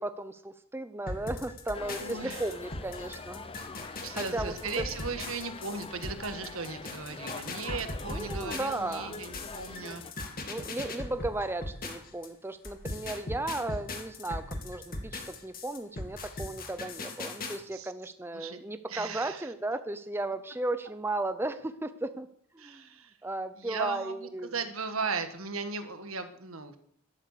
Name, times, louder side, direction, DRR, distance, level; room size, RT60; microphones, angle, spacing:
voice 1, 0.0-3.5 4.1-4.8 8.0-9.2 10.5-22.3 22.5-22.8 23.2-24.5, right 2 dB, 10° right, 10 dB, 0.6 m, -35 dB
sound 1, 1.1-12.3 12.6-17.6, left 2 dB, 40° left, 2.2 m, -39 dB
sound 2, 1.7-10.1, left 3 dB, 25° left, 0.7 m, -44 dB
voice 2, 2.0-2.5 3.9-10.0 17.7-17.9 18.3-18.6 18.9-19.5 22.6-23.1 23.6-26.8, right 4 dB, 70° right, 8 dB, 1.6 m, -37 dB
13.0 x 11.5 x 6.6 m, 0.66 s
head